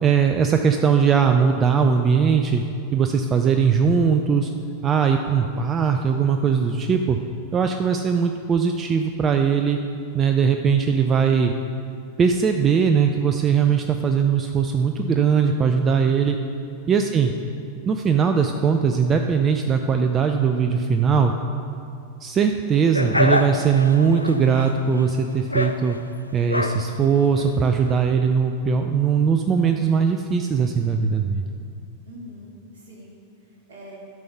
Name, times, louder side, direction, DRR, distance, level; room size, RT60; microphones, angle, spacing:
voice 1, 0.0-2.6 2.9-4.5 4.8-7.2 7.5-9.8 10.1-11.5 12.2-16.4 16.9-17.3 17.9-21.3 22.2-26.0 26.3-31.4, right 6 dB, 25° right, 5 dB, 0.4 m, -20 dB
sound 1, 22.9-28.0, left 1 dB, 85° left, 0.4 m, -27 dB
voice 2, 32.0-33.2 33.4-34.0, equal, 60° right, -3 dB, 2.3 m, -44 dB
12.5 x 5.3 x 5.8 m, 2.5 s
figure-of-eight pair, 90°, 0 cm